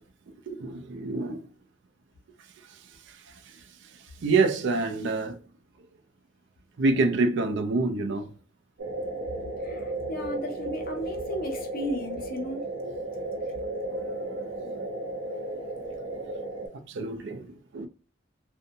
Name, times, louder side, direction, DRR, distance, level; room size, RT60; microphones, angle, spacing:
voice 1, 0.5-1.5 3.1-3.3 4.2-5.4 6.8-8.3 14.0-14.1 16.9-17.9, right 3 dB, 65° right, 0.4 m, -27 dB
sound 1, 8.8-16.7, right 2 dB, 85° right, 0.8 m, -34 dB
voice 2, 9.6-12.7, left 1 dB, 50° left, 0.7 m, -35 dB
2.6 x 2.1 x 2.6 m
head